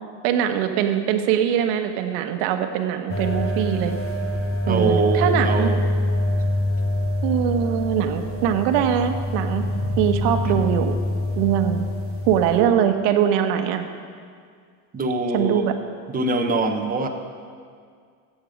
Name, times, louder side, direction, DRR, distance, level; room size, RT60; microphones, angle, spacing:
voice 1, 0.2-3.9 4.7-5.7 7.2-9.6 10.0-10.9 11.4-11.8 12.2-13.8 15.3-15.7, right 9 dB, 70° right, 7 dB, 1.2 m, -22 dB
sound 1, 3.1-12.6, left 1 dB, 25° left, 1.5 m, -25 dB
voice 2, 4.7-5.9 10.4-10.6 14.9-15.7 16.1-17.1, right 3 dB, 20° right, 4 dB, 1.1 m, -23 dB
14.0 x 8.6 x 5.2 m, 2.1 s
supercardioid pair, 125°, 47 cm